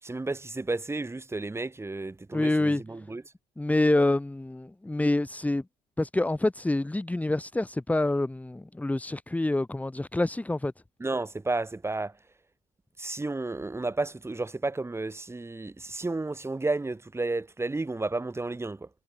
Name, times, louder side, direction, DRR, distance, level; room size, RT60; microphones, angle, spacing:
voice 1, 0.0-3.2 11.0-12.2 13.0-18.9, right 2 dB, 15° right, 5.2 m, -32 dB
voice 2, 2.3-2.8 3.6-5.6 6.0-10.7, left 2 dB, 10° left, 1.5 m, -26 dB
cardioid pair, 110°, 17 cm